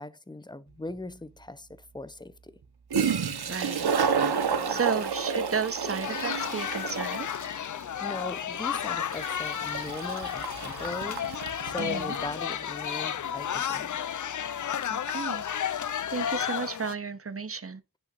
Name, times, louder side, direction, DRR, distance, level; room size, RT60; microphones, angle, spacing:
voice 1, 0.0-2.6 4.1-4.8 7.6-11.3 11.6-14.0, left 2 dB, 10° left, 0.6 m, -40 dB
Toilet flush, 0.9-1.0 2.6-2.7 2.9-12.3, right 6 dB, 90° right, 1.0 m, -31 dB
voice 2, 3.5-3.9 4.7-7.3 11.8-12.2 14.9-15.4 16.1-17.8, right 5 dB, 35° right, 0.9 m, -32 dB
sound 1, 6.0-16.9, left 9 dB, 55° left, 0.5 m, -32 dB
10.5 x 5.6 x 2.5 m
cardioid pair, 50°, 37 cm